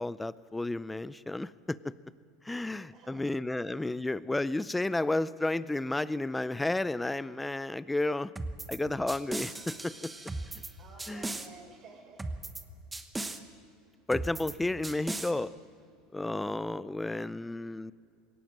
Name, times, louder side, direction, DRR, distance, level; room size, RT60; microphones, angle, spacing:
voice 1, 0.0-1.9 2.4-8.3 8.7-10.1 11.1-11.3 14.1-15.5 16.1-17.9, left 2 dB, 5° left, 17 dB, 0.4 m, -32 dB
voice 2, 2.9-3.3 10.8-12.4, right 3 dB, 35° right, 3 dB, 5.1 m, -52 dB
sound 1, 8.4-8.8 9.1-10.7 11.0-11.5 12.2-12.6 12.9-13.4 14.1-14.5 14.8-15.3, right 2 dB, 10° right, 1.0 m, -37 dB
21.0 x 18.0 x 7.4 m, 2.4 s
supercardioid pair, 145°, 0 cm